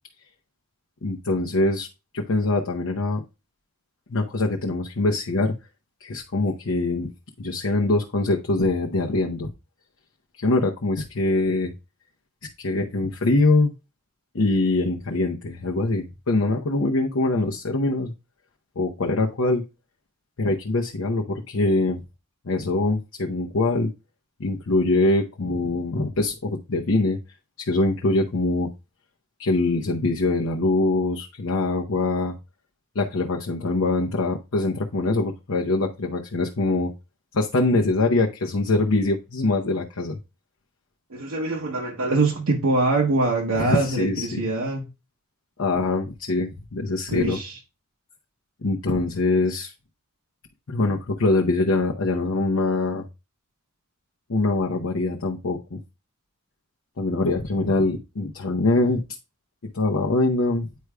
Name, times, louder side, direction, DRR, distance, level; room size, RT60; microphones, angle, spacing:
voice 1, 1.0-1.9 2.1-3.2 4.1-5.5 6.0-7.1 7.4-9.5 10.4-11.7 12.6-13.7 14.3-18.1 18.8-19.6 20.4-22.0 22.5-23.9 24.4-27.2 27.6-28.7 29.4-32.3 32.9-36.9 37.3-40.2 43.5-44.4 45.6-47.4 48.6-49.7 50.7-53.0 54.3-55.8 57.0-59.0 59.7-60.7, left 2 dB, 70° left, 0.8 m, -23 dB
voice 2, 41.1-44.9 47.1-47.6, right 3 dB, 70° right, 1.0 m, -24 dB
9.3 x 4.8 x 2.2 m
head